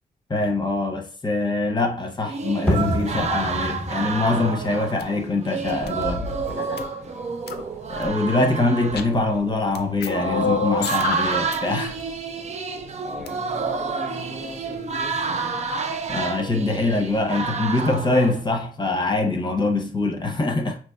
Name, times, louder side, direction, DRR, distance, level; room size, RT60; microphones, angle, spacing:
voice 1, 0.3-6.2 7.9-12.0 16.1-20.8, left 2 dB, 25° left, 0.8 m, -23 dB
sound 1, 2.2-18.4, right 5 dB, 45° right, 0.5 m, -29 dB
sound 2, 2.7-8.1, equal, 5° left, 1.2 m, -30 dB
sound 3, 5.0-5.1 5.6-6.8 7.5-8.1 8.8-9.4 9.8-11.6 11.8-12.0 13.1-13.3, left 6 dB, 90° left, 0.4 m, -29 dB
voice 2, 6.1-7.4 12.9-15.9, equal, 80° right, 1.6 m, -40 dB
4.3 x 3.0 x 2.3 m
cardioid pair, 70°, 17 cm